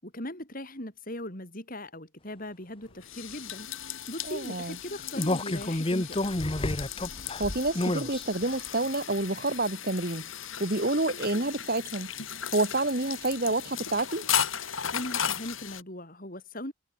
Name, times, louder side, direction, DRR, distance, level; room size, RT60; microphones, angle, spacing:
voice 1, 0.0-6.2 14.9-16.7, left 1 dB, 40° left, 4.9 m, -39 dB
sound 1, 2.8-15.8, left 9 dB, 70° left, 3.9 m, -36 dB
voice 2, 4.3-4.8 7.4-10.3 10.6-12.1 12.5-14.2, right 2 dB, 45° right, 2.1 m, -28 dB
sound 2, 5.1-8.2 8.7-8.8, left 1 dB, 25° left, 1.1 m, -29 dB
head